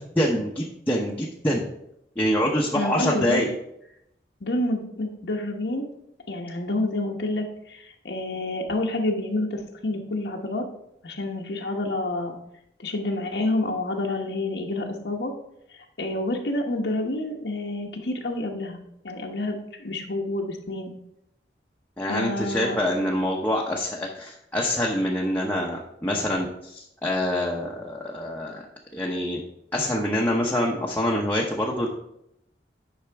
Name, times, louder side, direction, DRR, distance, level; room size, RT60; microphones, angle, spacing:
voice 1, 0.2-1.6 2.2-3.5 22.0-28.6 28.9-29.4 29.7-31.9, left 1 dB, 10° left, -3 dB, 0.8 m, -25 dB
voice 2, 2.7-3.4 4.4-5.9 6.3-10.6 11.0-12.3 12.8-15.3 15.7-20.9 22.1-22.8, left 2 dB, 75° left, 1 dB, 1.0 m, -28 dB
10.0 x 5.7 x 3.4 m, 0.79 s
head